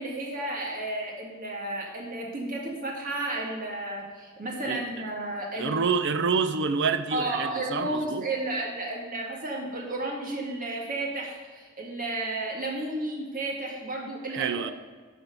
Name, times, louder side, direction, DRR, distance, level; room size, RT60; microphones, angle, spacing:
voice 1, 0.0-5.8 7.1-14.7, right 2 dB, 40° right, 1.9 m, -32 dB
voice 2, 5.6-8.2 14.3-14.7, right 5 dB, 60° right, 0.5 m, -27 dB
12.0 x 4.7 x 5.3 m
head